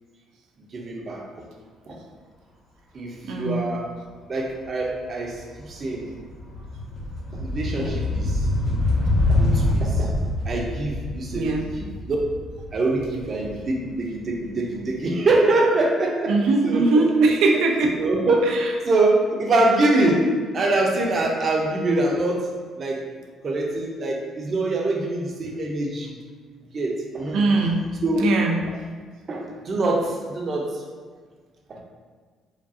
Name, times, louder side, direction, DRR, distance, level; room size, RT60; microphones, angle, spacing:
voice 1, 0.7-1.5 1.9-2.0 2.9-3.8 4.3-6.1 7.3-8.4 9.3-10.2 10.5-12.2 12.7-16.4 16.6-16.9 17.5-17.6 17.9-18.5 18.8-22.5 22.8-23.0 23.4-26.2 26.7-27.4 28.0-28.3 29.3-30.8 31.7-31.8, right 2 dB, 35° right, 0 dB, 0.6 m, -24 dB
voice 2, 3.2-3.6 11.3-11.7 16.3-18.0 18.5-18.7 27.3-27.9 28.2-28.6, right 3 dB, 80° right, 2 dB, 0.5 m, -20 dB
sound 1, 4.8-5.1 5.4-14.3, left 2 dB, 55° left, 0.9 m, -25 dB
4.9 x 2.3 x 2.7 m, 1.5 s
cardioid pair, 140°, 0 cm